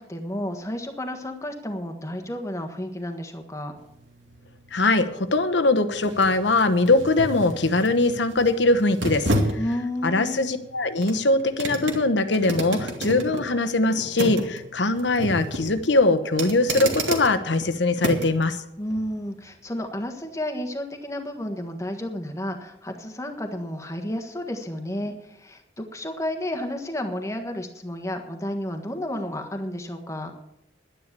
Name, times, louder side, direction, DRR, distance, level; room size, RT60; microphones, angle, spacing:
voice 1, 0.0-3.8 9.6-10.5 18.8-30.3, left 1 dB, 15° left, 5 dB, 1.4 m, -31 dB
sound 1, 3.8-18.5 18.9-19.0, right 1 dB, 85° right, 2.3 m, -32 dB
voice 2, 4.7-9.3 10.0-18.6, left 2 dB, 75° left, 9 dB, 1.1 m, -21 dB
11.5 x 9.9 x 6.7 m, 0.81 s
head